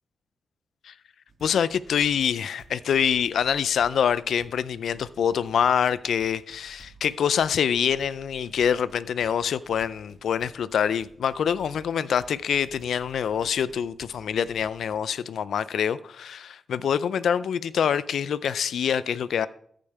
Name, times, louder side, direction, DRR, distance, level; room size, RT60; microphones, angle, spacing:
sound 1, 1.3-15.0, right 2 dB, 40° right, 2.3 m, -54 dB
voice 1, 1.4-19.5, left 8 dB, 85° left, 0.4 m, -25 dB
14.0 x 5.2 x 4.7 m
cardioid pair, 80°, 0 cm